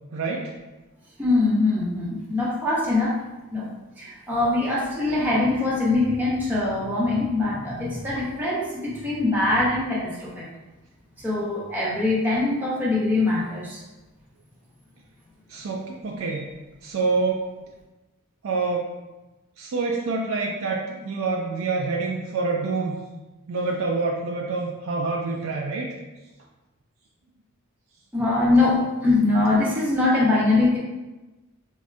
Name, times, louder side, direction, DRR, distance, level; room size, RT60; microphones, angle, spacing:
voice 1, 0.1-0.5 15.5-16.5 16.8-17.4 18.4-18.9 19.6-23.0 23.5-25.9, right 3 dB, 65° right, -1 dB, 0.4 m, -26 dB
voice 2, 1.2-3.2 3.5-3.7 4.0-10.5 11.2-13.8 28.1-30.8, left 2 dB, 10° right, -7 dB, 0.7 m, -22 dB
4.5 x 2.1 x 2.5 m, 1.1 s
head